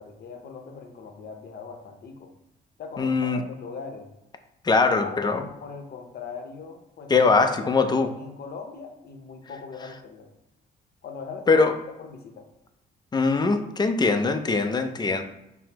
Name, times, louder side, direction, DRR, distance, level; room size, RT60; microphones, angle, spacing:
voice 1, 0.0-2.3 2.8-4.1 4.7-7.3 7.6-10.3 11.0-11.6 12.0-12.5, left 5 dB, 50° left, 4 dB, 0.7 m, -40 dB
voice 2, 3.0-3.4 4.6-5.4 7.1-8.1 11.5-11.7 13.1-15.2, left 4 dB, 20° left, 7 dB, 0.4 m, -21 dB
5.7 x 2.0 x 2.8 m, 0.89 s
cardioid pair, 90°, 20 cm